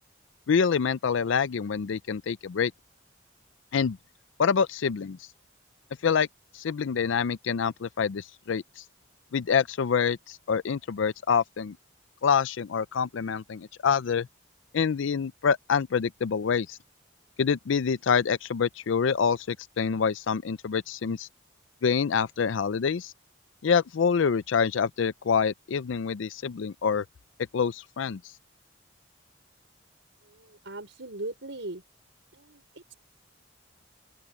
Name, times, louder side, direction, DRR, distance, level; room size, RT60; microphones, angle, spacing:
voice 1, 0.5-2.7 3.7-4.0 4.4-5.2 6.0-6.3 6.5-8.8 9.3-11.8 12.2-14.3 14.7-16.8 17.4-21.3 21.8-23.1 23.6-27.0 27.5-28.2, left 6 dB, 75° left, 0.4 m, -26 dB
voice 2, 30.2-31.8 32.3-32.9, right 2 dB, 70° right, 4.4 m, -39 dB
open air
head